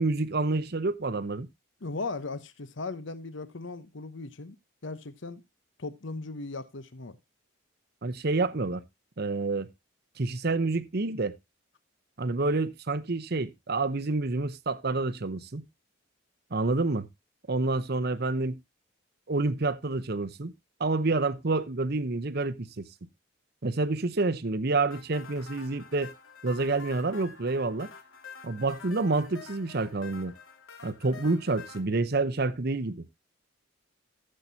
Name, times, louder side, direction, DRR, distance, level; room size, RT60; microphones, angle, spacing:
voice 1, 0.0-1.5 8.0-8.8 9.2-9.7 10.2-11.3 12.2-15.7 16.5-17.1 17.5-18.6 19.3-20.5 20.8-22.9 23.6-26.1 26.4-27.9 28.4-30.3 30.8-33.1, right 3 dB, 50° right, 0.8 m, -28 dB
voice 2, 1.8-4.6 4.8-5.4 5.8-7.2, left 3 dB, 60° left, 0.9 m, -37 dB
sound 1, 24.9-31.8, left 5 dB, 80° left, 2.1 m, -48 dB
15.0 x 7.6 x 2.7 m
head